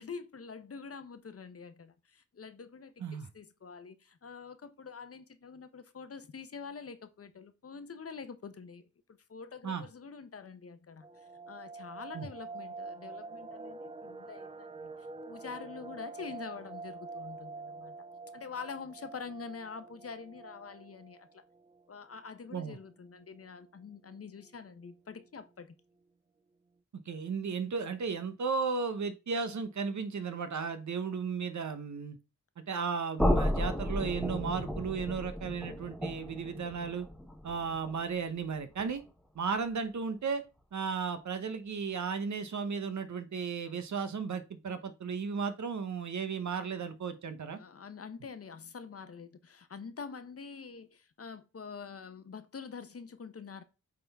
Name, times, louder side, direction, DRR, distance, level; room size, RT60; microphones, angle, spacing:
voice 1, 0.0-15.0 15.3-17.9 18.3-21.4 21.9-25.8 37.6-37.7 47.6-53.6, left 5 dB, 50° left, 0.8 m, -46 dB
sound 1, 11.0-21.8 22.1-22.2 22.6-22.7 23.2-23.6 24.1-24.2 24.4-24.9 25.2-25.3, right 3 dB, 20° right, 0.5 m, -46 dB
voice 2, 27.1-32.2 32.7-37.1 37.4-39.0 39.3-40.4 40.7-47.6, right 5 dB, 65° right, 0.9 m, -35 dB
sound 2, 33.2-39.1, left 1 dB, ahead, 0.8 m, -33 dB
8.4 x 3.9 x 3.4 m
wide cardioid pair, 85°, 31 cm